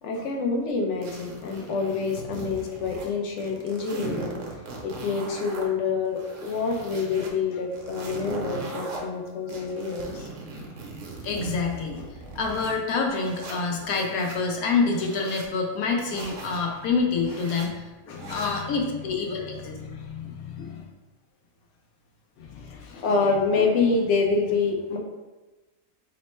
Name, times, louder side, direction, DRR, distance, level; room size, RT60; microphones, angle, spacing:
voice 1, 0.0-4.4 4.8-10.3 16.5-16.6 18.1-18.4 19.7-20.8 22.4-25.0, left 4 dB, 65° left, 1 dB, 0.8 m, -27 dB
sound 1, 1.0-3.1 3.4-5.7 6.1-7.3 7.7-9.0 9.5-12.7 13.2-14.4 14.9-15.5 16.0-16.6 17.2-17.7 18.2-18.7, right 3 dB, 65° right, 0.9 m, -39 dB
voice 2, 11.2-12.1 12.4-19.7 22.8-22.9, left 4 dB, 80° left, 1 dB, 1.1 m, -27 dB
3.1 x 2.1 x 4.2 m, 1.2 s
omnidirectional pair, 1.5 m